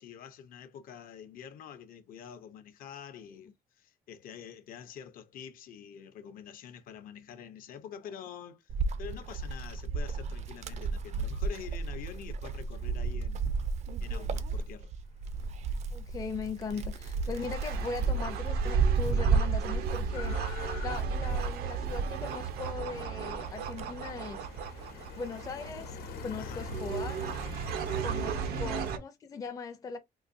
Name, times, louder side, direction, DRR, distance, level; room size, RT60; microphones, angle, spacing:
voice 1, 0.0-8.7 9.0-13.5 14.0-14.9 16.7-16.8 17.4-17.5 26.4-26.7 28.3-28.5, left 8 dB, 65° left, 0.6 m, -47 dB
Wind, 8.7-22.8 23.2-24.7, right 4 dB, 45° right, 0.4 m, -32 dB
voice 2, 15.9-24.5 25.2-26.0 26.2-27.2 28.0-30.0, left 5 dB, 25° left, 0.4 m, -39 dB
sound 1, 17.0-29.0, right 7 dB, 90° right, 0.6 m, -37 dB
sound 2, 18.6-28.9, left 4 dB, 90° left, 0.9 m, -45 dB
3.8 x 2.6 x 2.5 m
cardioid pair, 165°, 16 cm